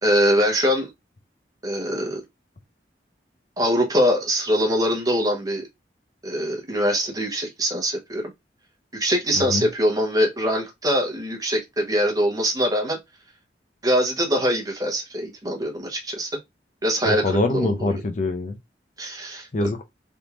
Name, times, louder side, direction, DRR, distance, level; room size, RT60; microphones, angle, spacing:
voice 1, 0.0-0.9 1.6-2.2 3.6-5.7 6.2-8.3 8.9-13.0 13.8-16.3 16.8-18.0 19.0-19.5, equal, 20° right, 1.0 m, -23 dB
voice 2, 17.0-18.6 19.5-19.8, left 2 dB, 45° left, 0.5 m, -24 dB
3.5 x 2.6 x 2.9 m
head